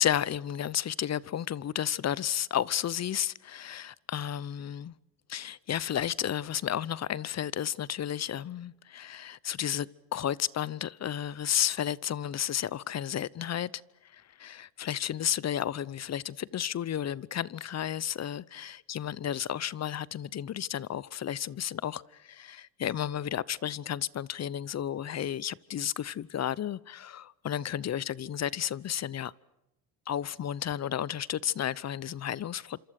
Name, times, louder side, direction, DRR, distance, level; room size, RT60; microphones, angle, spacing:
voice 1, 0.0-5.0 5.3-13.7 14.1-29.3 30.1-32.8, left 10 dB, 35° left, 0.9 m, -32 dB
27.5 x 27.0 x 6.6 m
supercardioid pair, 80°, 43 cm